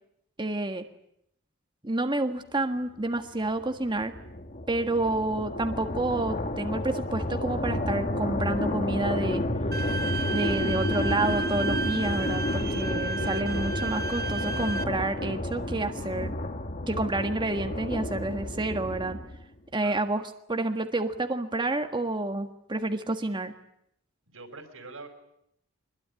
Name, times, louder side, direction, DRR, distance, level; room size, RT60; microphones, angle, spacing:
voice 1, 0.4-0.8 1.8-4.1 4.7-9.4 10.3-16.3 16.9-19.2 19.7-20.2 20.5-23.5, right 2 dB, 25° right, 5 dB, 1.6 m, -29 dB
sound 1, 3.3-19.5, left 1 dB, 40° left, 1.5 m, -31 dB
Bowed string instrument, 9.7-14.8, right 3 dB, 50° right, 1.2 m, -33 dB
voice 2, 24.3-25.1, right 3 dB, 75° right, 2 dB, 5.0 m, -44 dB
24.5 x 21.5 x 9.8 m, 0.76 s
head